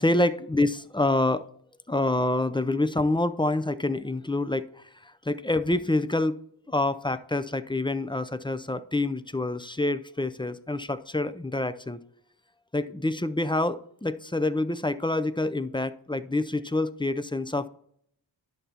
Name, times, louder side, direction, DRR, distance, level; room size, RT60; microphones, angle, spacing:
voice 1, 0.0-1.5 1.9-6.4 6.7-12.0 12.7-17.7, left 2 dB, 10° left, 12 dB, 0.5 m, -27 dB
11.0 x 6.7 x 2.9 m, 0.67 s
cardioid pair, 40°, 44 cm